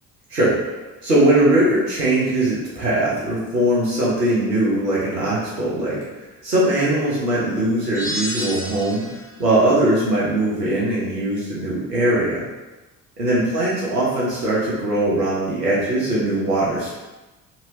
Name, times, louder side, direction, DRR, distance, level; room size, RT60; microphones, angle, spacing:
voice 1, 1.0-6.0 6.4-9.1 9.4-12.4 13.2-17.0, right 1 dB, 90° right, -7 dB, 1.0 m, -20 dB
sound 1, 7.9-9.3, equal, 5° right, 1.5 m, -30 dB
4.2 x 2.9 x 2.7 m, 1.1 s
figure-of-eight pair, 45°, 46 cm